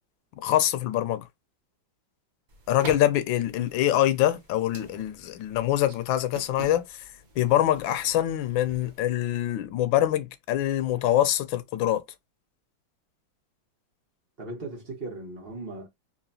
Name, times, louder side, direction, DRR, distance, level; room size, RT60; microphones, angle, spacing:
voice 1, 0.4-1.2 2.7-7.0 7.4-12.0, left 13 dB, 85° left, 1.4 m, -24 dB
sound 1, 2.5-9.0, right 4 dB, 70° right, 0.4 m, -45 dB
voice 2, 14.4-15.9, right 2 dB, 35° right, 1.3 m, -37 dB
3.9 x 2.8 x 2.7 m
omnidirectional pair, 2.0 m